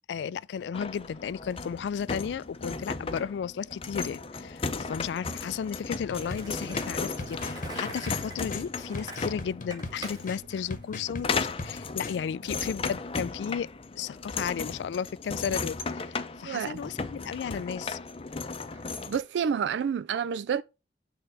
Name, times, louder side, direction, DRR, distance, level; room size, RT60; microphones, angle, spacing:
voice 1, 0.1-13.7 14.0-18.0, left 7 dB, 80° left, 0.3 m, -34 dB
sound 1, 0.7-19.2, left 4 dB, 35° left, 0.6 m, -36 dB
sound 2, 6.1-12.2, left 2 dB, 50° left, 1.0 m, -41 dB
Skateboard, 6.1-11.6, right 2 dB, 25° right, 2.1 m, -44 dB
voice 2, 16.4-16.8 19.1-20.6, right 7 dB, 85° right, 0.3 m, -29 dB
6.7 x 3.8 x 5.8 m
head